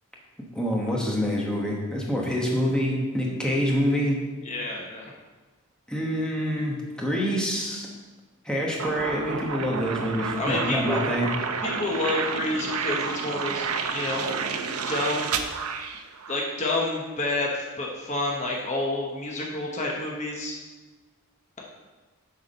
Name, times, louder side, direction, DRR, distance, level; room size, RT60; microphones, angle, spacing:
voice 1, 0.5-4.2 5.9-7.9 8.4-11.3, equal, 5° left, -3 dB, 1.2 m, -26 dB
voice 2, 4.4-5.1 10.3-11.1 11.6-13.6 13.9-14.3 14.9-15.3 16.3-20.6, left 2 dB, 30° left, -1 dB, 0.9 m, -29 dB
sound 1, 8.8-16.6, right 5 dB, 80° right, 0.6 m, -30 dB
8.2 x 4.8 x 5.4 m, 1.3 s
head